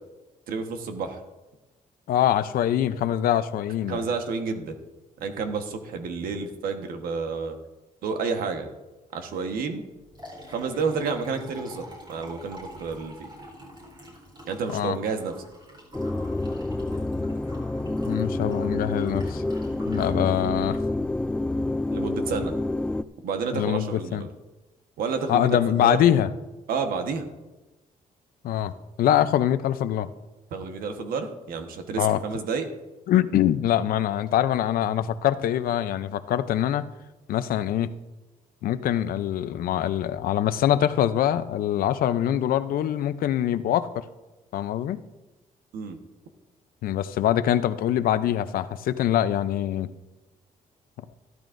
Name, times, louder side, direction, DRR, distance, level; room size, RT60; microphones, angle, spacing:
voice 1, 0.5-1.2 3.9-4.7 5.2-7.6 8.0-8.7 9.1-9.8 10.5-13.3 14.4-15.3 21.9-22.5 23.2-24.3 25.0-26.2 26.7-27.3 30.5-32.7 45.7-46.0, right 5 dB, 90° right, 6 dB, 1.3 m, -30 dB
voice 2, 2.1-4.0 14.7-15.0 18.1-19.4 19.9-20.8 23.5-24.3 25.3-26.3 28.4-28.7 29.0-30.1 32.0-32.2 33.1-36.8 37.3-37.9 38.6-44.0 44.5-45.0 46.8-49.9, left 11 dB, 85° left, 13 dB, 0.6 m, -24 dB
Liquid, 9.9-21.7, equal, 30° right, 4.0 m, -47 dB
sound 1, 15.9-23.0, left 2 dB, 10° left, 0.3 m, -28 dB
14.0 x 12.5 x 2.6 m, 1.1 s
cardioid pair, 110°, 15 cm